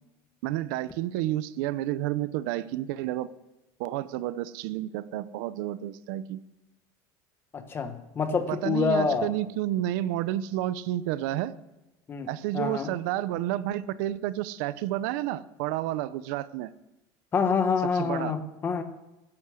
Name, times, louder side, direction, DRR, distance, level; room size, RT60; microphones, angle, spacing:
voice 1, 0.4-3.3 3.8-6.4 8.5-11.5 12.3-16.7 18.0-18.3, right 14 dB, 80° right, 15 dB, 0.7 m, -30 dB
voice 2, 7.5-9.3 12.1-12.9 17.3-18.8, left 5 dB, 25° left, 9 dB, 1.2 m, -27 dB
13.5 x 10.5 x 6.3 m, 0.99 s
cardioid pair, 160°, 10 cm